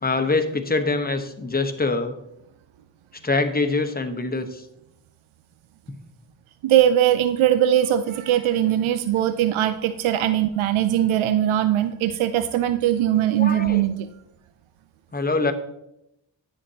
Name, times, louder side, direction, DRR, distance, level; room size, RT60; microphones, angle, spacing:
voice 1, 0.0-2.1 3.2-4.6 13.4-13.8 15.1-15.5, left 3 dB, 20° left, 6 dB, 0.9 m, -24 dB
voice 2, 6.6-14.1, right 11 dB, 80° right, 11 dB, 0.5 m, -20 dB
9.6 x 7.1 x 2.7 m, 0.84 s
cardioid pair, 40°, 47 cm